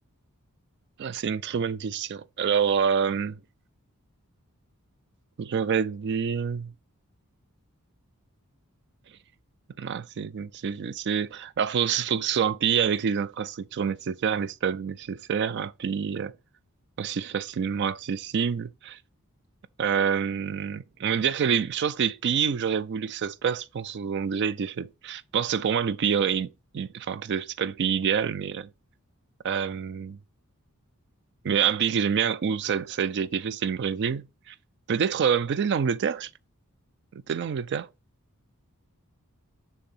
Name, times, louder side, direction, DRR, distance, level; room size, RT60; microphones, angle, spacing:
voice 1, 1.0-3.4 5.4-6.7 9.8-16.3 17.0-19.0 19.8-28.7 29.4-30.2 31.4-34.5 34.9-36.3 37.1-37.9, right 7 dB, 50° right, 0.3 m, -27 dB
6.8 x 2.8 x 5.5 m
head